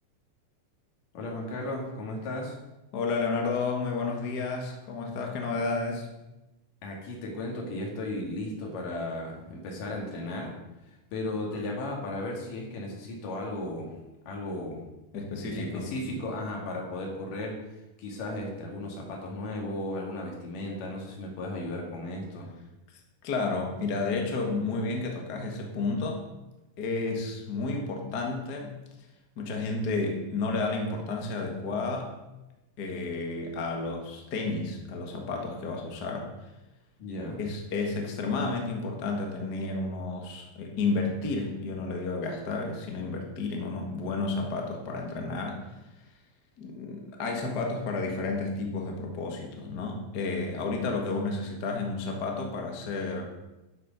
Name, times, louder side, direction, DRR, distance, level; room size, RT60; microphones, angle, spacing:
voice 1, 1.1-2.6 6.8-10.6 10.9-13.9 14.3-14.8 15.3-17.6 18.0-22.5 37.0-37.4, left 1 dB, 75° left, -1 dB, 3.9 m, -35 dB
voice 2, 2.9-6.1 15.1-15.9 23.2-26.2 26.8-28.7 29.4-32.1 32.8-36.3 37.4-45.7 46.6-53.2, left 3 dB, 40° left, 1 dB, 1.7 m, -31 dB
12.0 x 7.9 x 5.3 m, 1.0 s
omnidirectional pair, 3.9 m